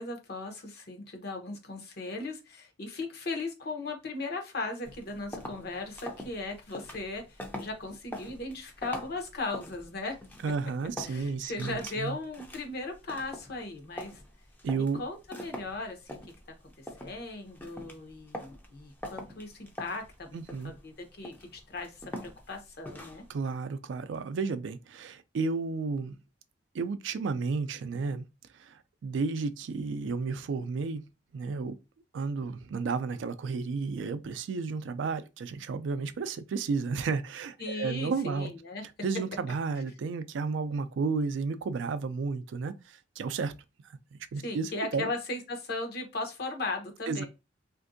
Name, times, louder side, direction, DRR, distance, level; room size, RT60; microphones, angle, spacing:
voice 1, 0.0-10.2 11.0-14.2 14.7-16.2 16.8-23.2 37.6-38.8 44.4-47.3, left 2 dB, 55° left, 0.7 m, -37 dB
sound 1, 4.8-23.3, left 1 dB, 10° left, 0.4 m, -45 dB
voice 2, 10.4-12.2 14.6-15.0 20.3-20.7 23.3-26.1 26.7-28.2 28.6-31.0 31.3-31.8 32.1-38.5 39.0-43.5 44.3-45.1 47.1-47.2, right 4 dB, 75° right, 0.3 m, -32 dB
3.4 x 2.5 x 2.5 m
head